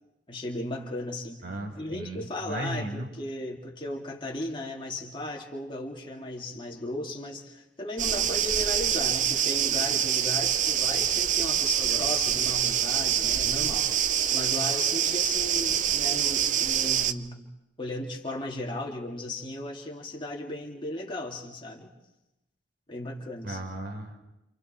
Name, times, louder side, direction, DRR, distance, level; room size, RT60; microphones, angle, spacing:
voice 1, 0.3-1.4 1.7-17.4 17.8-21.9 22.9-23.6, left 1 dB, 25° left, -2 dB, 2.5 m, -36 dB
voice 2, 1.4-3.1 23.4-24.2, right 1 dB, 55° right, 4 dB, 3.8 m, -36 dB
sound 1, 8.0-17.1, right 9 dB, 40° right, 0.7 m, -25 dB
29.0 x 28.0 x 4.4 m, 0.92 s
head